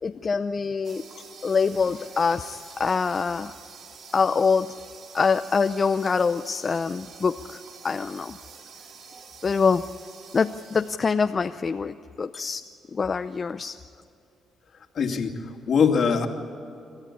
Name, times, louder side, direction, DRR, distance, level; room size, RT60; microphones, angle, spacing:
voice 1, 0.0-1.0 1.4-3.5 4.1-4.7 5.1-8.4 9.4-9.8 10.3-12.6 12.9-13.8, left 5 dB, 35° left, 9 dB, 0.6 m, -25 dB
sound 1, 0.8-11.0, right 5 dB, 65° right, 2.2 m, -47 dB
voice 2, 14.9-16.3, left 6 dB, 55° left, 4 dB, 2.4 m, -24 dB
28.0 x 14.0 x 9.8 m, 2.7 s
cardioid pair, 90°, 0 cm